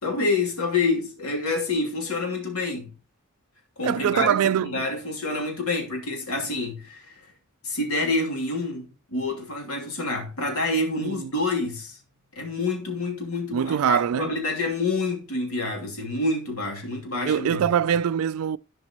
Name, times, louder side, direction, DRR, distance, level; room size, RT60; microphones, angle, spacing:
voice 1, 0.0-2.9 3.8-7.3 7.6-8.8 9.1-12.0 12.3-17.6, left 3 dB, 70° left, 2.8 m, -27 dB
voice 2, 3.8-4.8 11.0-11.3 13.5-14.3 17.3-18.6, right 8 dB, 70° right, 0.3 m, -23 dB
15.0 x 5.3 x 3.0 m
head